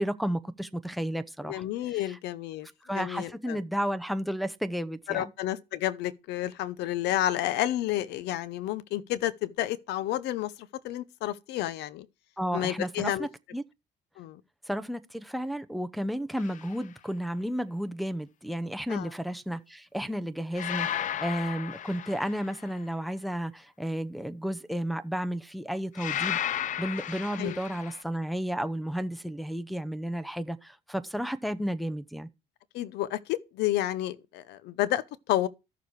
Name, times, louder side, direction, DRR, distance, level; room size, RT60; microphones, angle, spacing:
voice 1, 0.0-1.6 2.1-2.2 2.8-5.3 12.4-13.6 14.7-26.4 26.8-32.3, equal, ahead, 0.8 m, -32 dB
voice 2, 1.4-2.7 2.9-3.6 5.1-12.1 12.5-13.3 14.2-14.4 18.9-19.1 27.4-27.6 32.7-35.5, left 13 dB, 80° left, 0.8 m, -30 dB
sound 1, 16.4-16.7 20.6-22.7 26.0-28.0, left 10 dB, 50° left, 0.6 m, -34 dB
13.5 x 6.8 x 4.7 m
cardioid pair, 110°, 17 cm